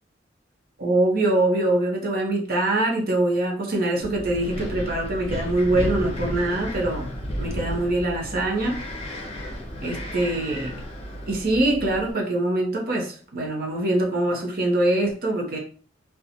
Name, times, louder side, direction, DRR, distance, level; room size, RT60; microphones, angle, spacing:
voice 1, 0.8-7.1 7.4-8.8 9.8-10.8 11.3-15.6, right 1 dB, 50° right, 0 dB, 0.7 m, -23 dB
Wind, 4.0-12.1, equal, 35° left, 0.6 m, -33 dB
2.9 x 2.2 x 2.5 m, 0.42 s
head